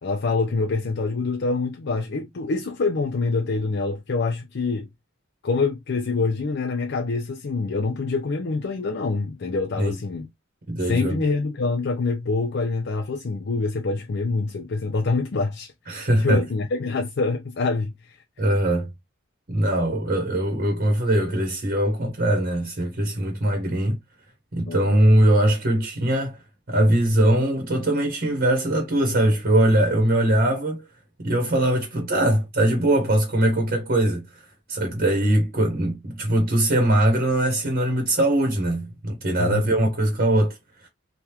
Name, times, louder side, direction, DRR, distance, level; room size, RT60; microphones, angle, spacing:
voice 1, 0.0-4.9 5.4-10.3 10.8-18.2 24.7-24.9 39.4-39.8, left 3 dB, 60° left, 0.5 m, -26 dB
voice 2, 10.7-11.2 15.9-16.4 18.4-18.9 19.5-24.0 24.5-26.4 26.7-30.8 31.2-34.2 34.7-40.9, right 1 dB, 50° right, 1.0 m, -21 dB
3.4 x 2.3 x 2.9 m
head